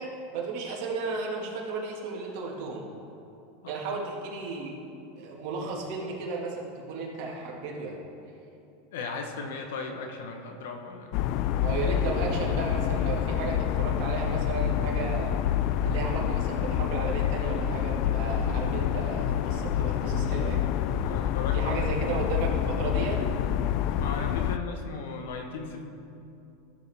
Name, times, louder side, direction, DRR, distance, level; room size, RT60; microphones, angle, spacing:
voice 1, 0.0-2.9 3.7-4.8 5.2-8.0 11.6-15.4 15.8-20.6 21.5-23.2, right 3 dB, 55° right, -2 dB, 1.9 m, -34 dB
voice 2, 8.9-11.1 21.0-21.9 24.0-25.8, left 4 dB, 80° left, 4 dB, 1.0 m, -37 dB
sound 1, 11.1-24.6, left 9 dB, 50° left, 0.3 m, -27 dB
14.5 x 7.2 x 3.5 m, 2.8 s
supercardioid pair, 135°, 0 cm